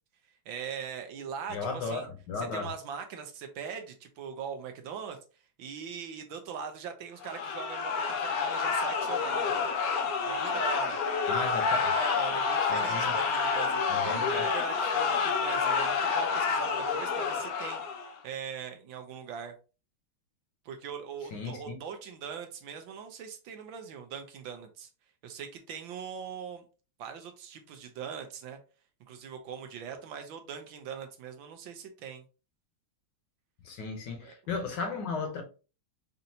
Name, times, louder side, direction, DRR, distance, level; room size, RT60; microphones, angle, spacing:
voice 1, 0.5-2.1 2.4-5.2 5.6-9.6 10.2-11.0 11.7-17.8 18.2-19.5 20.6-24.9 25.2-26.6 27.0-28.6 29.1-32.2 34.2-34.3, right 7 dB, 75° right, 1.4 m, -41 dB
voice 2, 1.5-2.7 11.3-11.9 12.7-13.1 13.9-14.4 21.3-21.8 33.6-35.4, left 4 dB, 65° left, 1.4 m, -35 dB
sound 1, 7.2-18.2, left 5 dB, 80° left, 0.8 m, -29 dB
5.3 x 2.6 x 2.7 m
omnidirectional pair, 2.3 m